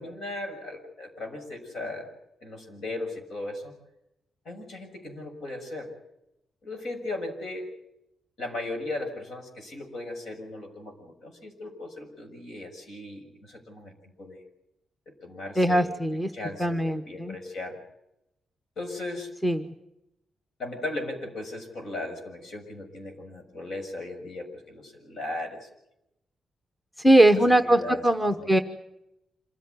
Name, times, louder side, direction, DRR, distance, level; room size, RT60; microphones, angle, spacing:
voice 1, 0.0-2.1 2.4-3.7 4.4-5.9 6.6-7.7 8.4-13.9 14.2-14.4 15.2-15.9 16.3-17.8 18.8-19.3 20.6-25.7 27.6-28.0 28.4-28.6, left 2 dB, 65° left, 4 dB, 6.6 m, -37 dB
voice 2, 15.6-16.3 16.6-17.3 19.4-19.7 27.0-28.6, right 1 dB, 5° left, 6 dB, 1.1 m, -21 dB
27.0 x 14.5 x 9.5 m, 0.86 s
wide cardioid pair, 155°, 0 cm